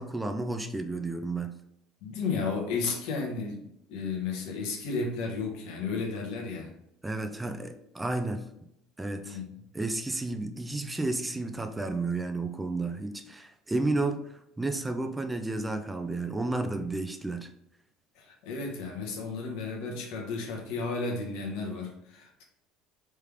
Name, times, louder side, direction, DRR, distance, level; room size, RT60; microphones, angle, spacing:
voice 1, 0.0-1.6 7.0-8.4 9.0-9.4 9.7-17.5, right 2 dB, 10° right, 7 dB, 0.3 m, -32 dB
voice 2, 2.0-3.6 3.9-6.7 9.2-9.5 18.1-22.4, left 4 dB, 75° left, 2 dB, 1.0 m, -33 dB
3.3 x 3.2 x 3.5 m, 0.78 s
supercardioid pair, 110°, 0 cm